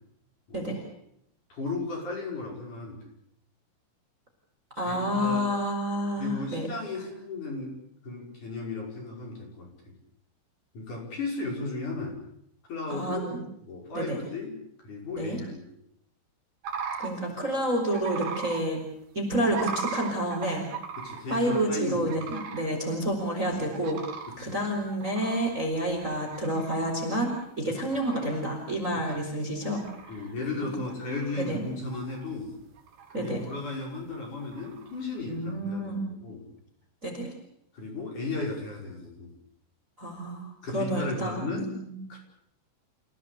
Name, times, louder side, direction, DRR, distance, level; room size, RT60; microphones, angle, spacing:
voice 1, 1.5-3.0 4.8-5.4 6.2-7.7 8.0-9.7 10.7-12.2 12.7-13.3 13.6-14.5 14.8-15.7 21.0-22.3 24.4-24.5 29.0-29.1 30.1-32.5 33.2-36.5 37.7-39.3 40.6-41.8 42.1-42.2, left 3 dB, 40° left, 0 dB, 6.7 m, -35 dB
voice 2, 4.7-6.7 12.9-13.4 13.9-14.2 15.2-15.4 17.0-18.8 19.1-20.7 21.3-24.0 24.4-30.2 31.3-31.6 33.1-33.5 35.3-36.0 37.0-37.3 40.0-41.9, right 1 dB, 15° right, 2 dB, 4.4 m, -29 dB
sound 1, 16.6-17.1 17.9-18.6 19.4-21.7 22.1-22.7 23.1-23.2 23.7-24.3 24.9-26.8 27.1-27.5 27.9-28.4 29.0-29.1 29.5-30.3 30.9-31.6 31.9-32.5 32.8-33.3 34.4-35.0, right 6 dB, 55° right, 4.2 m, -38 dB
29.0 x 17.0 x 8.4 m, 0.77 s
omnidirectional pair, 5.6 m